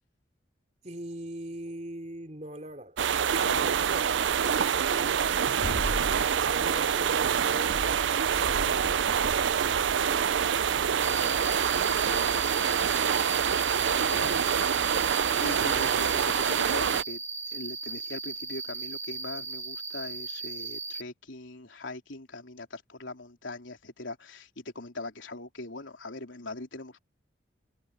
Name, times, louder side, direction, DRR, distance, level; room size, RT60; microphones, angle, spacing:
voice 1, 0.8-3.0 3.5-5.4 6.4-11.0 11.8-12.7 13.1-13.3, right 1 dB, 35° right, 3.4 m, -43 dB
sound 1, 3.0-17.0, right 8 dB, 75° right, 0.5 m, -26 dB
voice 2, 3.4-3.8 10.8-12.5 14.1-17.2 17.5-27.0, left 2 dB, 85° left, 3.7 m, -41 dB
sound 2, 3.7-14.6, left 1 dB, 60° left, 2.1 m, -40 dB
Cricket, 11.0-21.0, right 3 dB, 15° right, 1.7 m, -37 dB
head